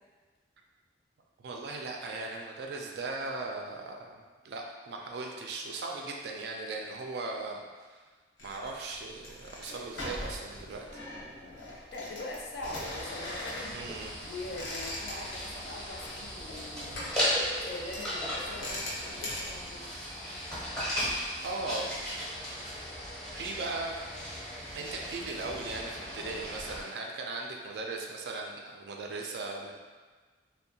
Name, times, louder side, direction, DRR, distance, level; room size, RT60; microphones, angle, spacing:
voice 1, 1.4-8.0 8.4-11.0 13.7-14.2 21.4-21.9 23.3-24.0 24.7-29.7, right 3 dB, 60° right, 0 dB, 0.3 m, -38 dB
sound 1, 8.4-19.7, left 1 dB, 90° left, 0.7 m, -42 dB
voice 2, 11.6-13.8 14.2-17.2 17.6-19.9 26.2-26.4, left 2 dB, 55° left, -2 dB, 0.4 m, -43 dB
sound 2, 12.6-26.8, equal, 5° left, 0.5 m, -37 dB
2.6 x 2.1 x 2.7 m, 1.4 s
head